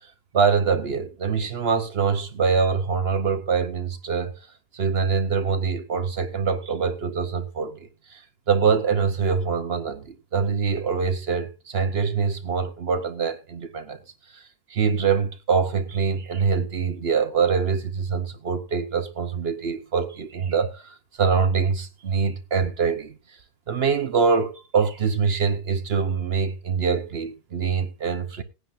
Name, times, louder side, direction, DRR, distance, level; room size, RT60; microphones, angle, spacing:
voice 1, 0.3-4.4 4.7-8.2 8.5-14.0 14.3-14.4 14.7-23.2 23.7-28.4, right 5 dB, 50° right, 0.9 m, -24 dB
18.5 x 9.8 x 2.5 m
omnidirectional pair, 1.7 m